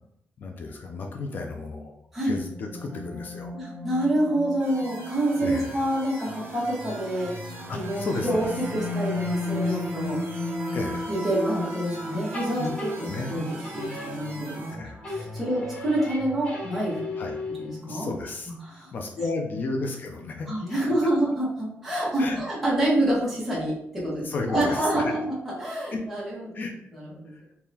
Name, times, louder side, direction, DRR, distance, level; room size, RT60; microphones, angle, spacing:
voice 1, 0.4-1.9 2.2-3.5 5.4-5.8 7.7-8.4 10.7-11.1 12.6-12.7 13.0-13.4 14.7-15.0 17.2-17.3 17.8-18.5 18.8-20.9 22.2-22.4 24.2-25.1 25.9-26.0 26.5-26.7 27.3-27.5, left 3 dB, 45° left, 3 dB, 0.5 m, -33 dB
sound 1, 2.2-17.5, left 1 dB, 30° right, 0.8 m, -35 dB
voice 2, 3.5-7.3 7.7-10.2 11.1-13.4 13.7-14.7 15.1-17.0 17.6-18.1 18.6-18.9 20.5-26.6 26.9-27.5, right 1 dB, 5° right, -7 dB, 1.4 m, -27 dB
sound 2, 4.6-14.7, right 2 dB, 65° right, 1.1 m, -43 dB
sound 3, 12.3-14.7 15.0-17.9, left 2 dB, 25° left, 0.9 m, -37 dB
3.7 x 2.8 x 2.8 m, 0.72 s
wide cardioid pair, 155°, 4 cm